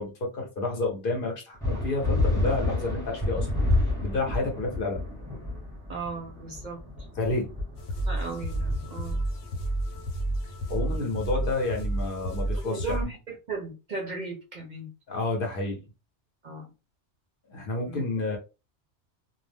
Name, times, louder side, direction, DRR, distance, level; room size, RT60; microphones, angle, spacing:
voice 1, 0.0-3.5 4.0-5.0 7.2-7.5 10.7-13.1 15.1-15.8 17.5-18.4, left 2 dB, 55° left, 0.9 m, -30 dB
sound 1, 1.6-11.6, left 2 dB, 5° left, 1.0 m, -30 dB
voice 2, 5.9-6.8 8.1-9.3 12.6-13.2 13.5-14.9 16.4-16.7 17.9-18.0, right 4 dB, 50° right, 0.7 m, -36 dB
sound 2, 7.8-13.0, right 1 dB, 80° left, 1.0 m, -31 dB
2.4 x 2.0 x 3.3 m
omnidirectional pair, 1.2 m